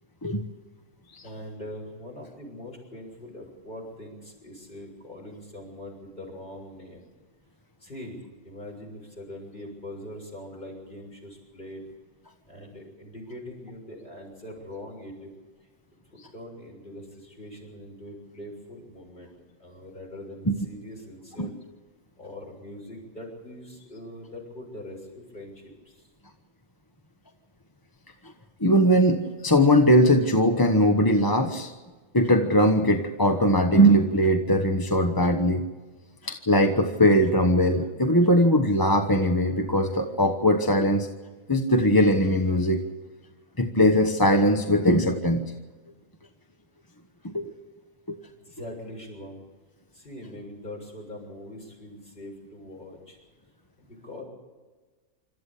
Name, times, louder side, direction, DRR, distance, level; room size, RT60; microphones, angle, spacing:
voice 1, 1.2-7.1 7.8-11.8 12.5-15.3 16.1-19.3 19.6-21.6 22.2-26.1 48.3-49.4 49.9-53.2 53.8-54.2, left 1 dB, 40° left, 0 dB, 7.0 m, -42 dB
voice 2, 28.6-31.7 32.1-35.6 36.2-41.1 41.5-42.8 43.6-45.4 47.2-47.5 48.1-48.2, equal, 20° left, 4 dB, 1.1 m, -20 dB
27.0 x 13.5 x 8.4 m, 1.3 s
omnidirectional pair, 1.3 m